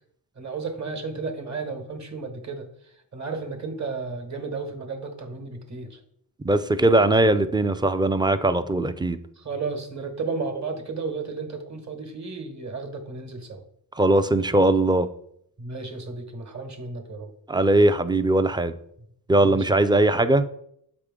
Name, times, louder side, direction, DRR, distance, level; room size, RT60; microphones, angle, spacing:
voice 1, 0.4-2.7 3.1-6.0 9.4-13.6 15.6-17.3 19.4-19.9, right 4 dB, 40° right, 6 dB, 1.3 m, -33 dB
voice 2, 6.4-9.2 14.0-15.1 17.5-18.7 19.3-20.4, right 2 dB, 10° right, 11 dB, 0.4 m, -20 dB
7.5 x 4.9 x 3.7 m, 0.71 s
cardioid pair, 75°, 42 cm